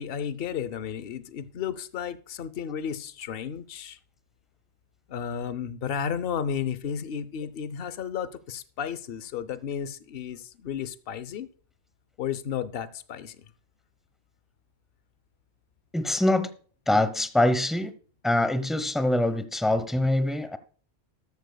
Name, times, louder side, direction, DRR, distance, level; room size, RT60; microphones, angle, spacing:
voice 1, 0.0-4.0 5.1-11.5 12.2-13.4, left 8 dB, 60° left, 0.9 m, -33 dB
voice 2, 15.9-16.5 16.9-17.9 18.2-20.6, left 1 dB, ahead, 0.6 m, -24 dB
13.5 x 13.0 x 2.3 m
omnidirectional pair, 1.1 m